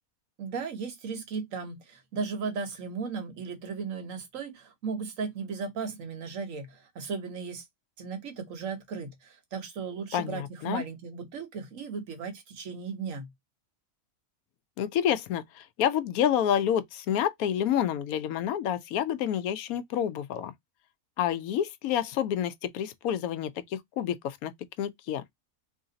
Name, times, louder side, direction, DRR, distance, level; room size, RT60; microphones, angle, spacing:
voice 1, 0.4-7.6 8.0-13.3, right 5 dB, 70° right, 1.3 m, -36 dB
voice 2, 10.1-10.8 14.8-20.5 21.2-24.5 24.8-25.2, left 10 dB, 90° left, 1.0 m, -28 dB
3.1 x 2.6 x 3.8 m
omnidirectional pair, 1.5 m